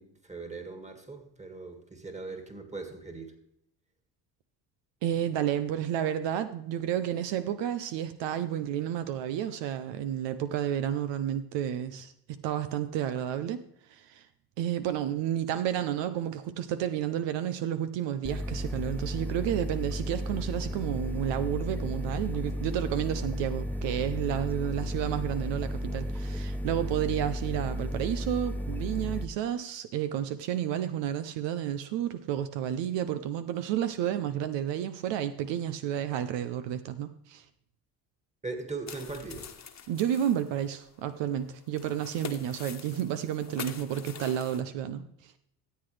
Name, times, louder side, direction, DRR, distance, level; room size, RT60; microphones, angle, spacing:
voice 1, 0.0-3.3 38.4-39.5, right 3 dB, 15° right, 6 dB, 2.0 m, -40 dB
voice 2, 5.0-13.6 13.9-14.3 14.6-37.4 39.9-45.3, right 10 dB, 75° right, 11 dB, 0.7 m, -31 dB
sound 1, 18.2-29.3, equal, 5° left, 0.4 m, -34 dB
sound 2, 38.9-44.6, left 6 dB, 35° left, 1.3 m, -44 dB
14.0 x 8.0 x 3.3 m, 0.73 s
supercardioid pair, 80°, 44 cm